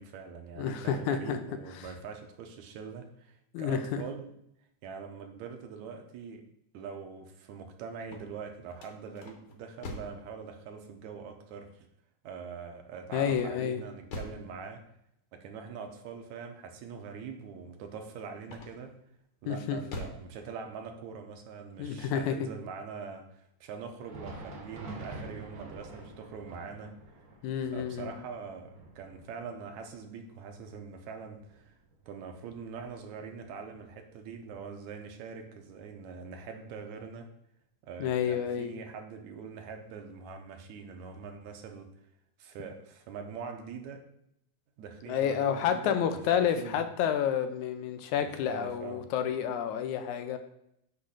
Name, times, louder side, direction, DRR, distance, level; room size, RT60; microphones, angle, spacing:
voice 1, 0.0-4.3 4.8-6.4 6.7-11.9 12.2-14.8 15.3-18.9 19.4-27.2 27.7-31.8 32.1-37.3 37.8-41.9 42.4-44.0 44.8-46.8 48.2-49.0, right 5 dB, 75° right, 4 dB, 2.0 m, -43 dB
voice 2, 0.6-1.4 3.5-3.8 13.1-13.8 19.5-19.8 21.8-22.4 27.4-28.1 38.0-38.8 45.1-50.4, left 8 dB, 80° left, 8 dB, 2.0 m, -29 dB
sound 1, 7.9-10.3 13.2-14.5 18.4-19.0 19.5-20.3, left 2 dB, 55° left, 1.6 m, -43 dB
Thunder, 23.9-33.3 33.7-33.8 34.5-34.7 35.7-35.8, right 2 dB, 50° right, 1.0 m, -48 dB
8.3 x 3.1 x 6.3 m, 0.75 s
omnidirectional pair, 3.5 m